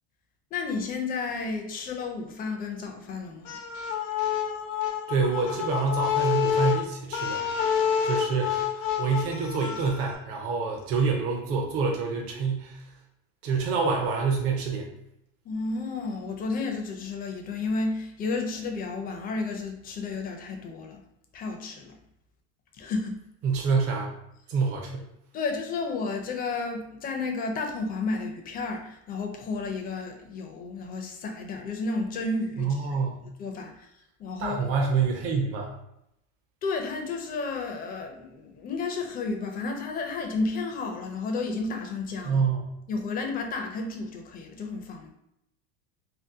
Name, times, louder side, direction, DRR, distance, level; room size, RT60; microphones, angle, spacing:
voice 1, 0.5-3.6 15.5-21.0 21.3-22.0 22.8-23.2 25.3-32.9 33.4-33.9 34.2-34.6 36.6-42.4 42.9-45.1, left 3 dB, 25° left, 3 dB, 0.4 m, -32 dB
sound 1, 3.5-10.2, left 8 dB, 85° left, 0.7 m, -28 dB
voice 2, 5.1-7.4 8.0-12.8 13.4-14.9 23.4-24.1 24.5-25.0 32.6-33.2 34.4-35.7 42.2-42.7, right 5 dB, 40° right, 0 dB, 0.5 m, -27 dB
2.7 x 2.1 x 3.5 m, 0.81 s
supercardioid pair, 130°, 36 cm